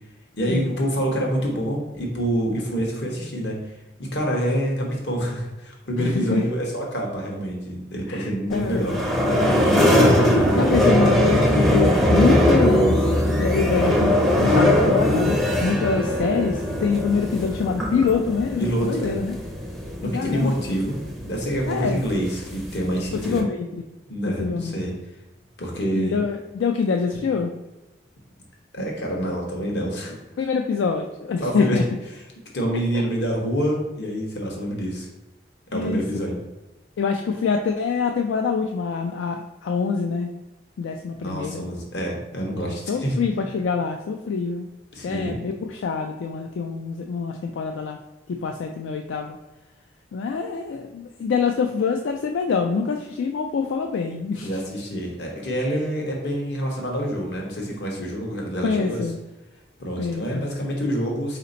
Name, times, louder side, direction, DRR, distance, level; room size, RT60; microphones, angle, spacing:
voice 1, 0.4-3.6 4.0-9.0 18.6-19.2 20.0-23.5 24.1-24.9 25.6-26.2 28.7-30.2 31.4-31.8 32.5-35.1 35.7-36.4 41.2-43.2 44.9-45.3 54.4-59.0 59.8-61.4, equal, 70° left, -1 dB, 1.1 m, -27 dB
voice 2, 6.0-6.4 8.1-9.0 9.8-13.0 13.4-14.1 14.4-19.4 20.0-20.5 21.7-22.0 23.1-23.7 24.4-24.8 25.9-27.5 30.4-31.8 35.7-36.0 37.0-40.3 40.8-41.6 42.6-44.7 45.0-48.0 48.3-49.4 50.1-54.6 58.6-59.2 60.0-60.5, left 5 dB, 90° left, 4 dB, 0.3 m, -25 dB
sound 1, 8.5-23.4, left 1 dB, ahead, 0.4 m, -21 dB
4.2 x 2.8 x 3.9 m, 1.1 s
head